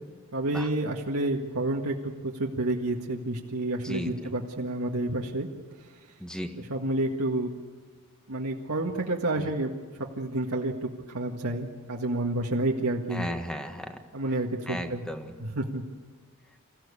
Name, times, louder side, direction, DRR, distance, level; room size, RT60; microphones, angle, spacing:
voice 1, 0.3-5.5 6.6-7.5 8.3-9.7 10.2-13.3 14.1-15.0 15.4-15.8, right 2 dB, 80° right, -1 dB, 1.9 m, -29 dB
voice 2, 3.8-4.3 6.2-6.6 9.4-9.5 13.1-14.0 14.7-15.3, equal, 5° left, 5 dB, 1.6 m, -35 dB
27.5 x 15.5 x 8.5 m, 1.5 s
head